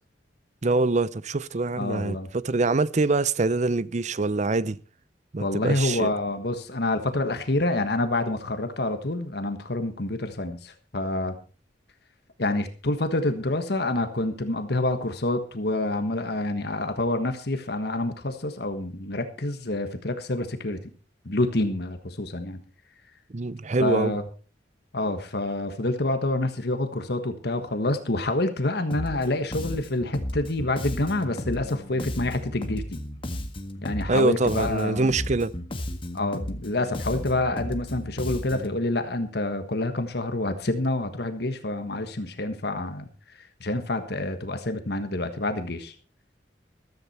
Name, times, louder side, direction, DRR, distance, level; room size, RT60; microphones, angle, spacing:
voice 1, 0.6-4.8 5.3-6.1 23.3-24.2 34.1-35.5, right 3 dB, 40° right, 0.6 m, -24 dB
voice 2, 1.7-2.3 5.4-11.3 12.4-20.8 21.2-22.6 23.8-24.2 24.9-33.0 33.8-35.1 36.1-45.9, left 2 dB, 60° left, 1.4 m, -27 dB
Bass guitar, 28.9-29.3 29.5-34.2 34.5-38.8, left 1 dB, 30° left, 1.6 m, -34 dB
14.5 x 13.5 x 4.3 m
head